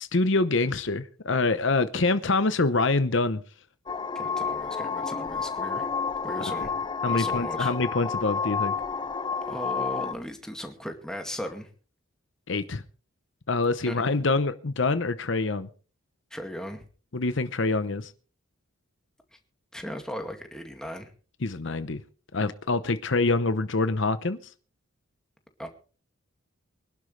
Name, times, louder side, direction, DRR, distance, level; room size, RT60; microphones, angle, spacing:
voice 1, 0.0-3.4 6.4-6.7 7.0-8.7 12.5-12.8 13.5-15.7 17.1-18.1 21.4-22.0 22.3-24.4, left 3 dB, 60° left, 0.9 m, -25 dB
sound 1, 3.9-10.1, left 5 dB, 20° left, 0.6 m, -30 dB
voice 2, 4.1-5.9 6.2-6.7 7.1-7.7 9.4-11.7 13.8-14.1 16.3-16.9 19.7-21.1 25.6-25.7, equal, 5° left, 2.2 m, -37 dB
24.5 x 11.5 x 3.3 m
head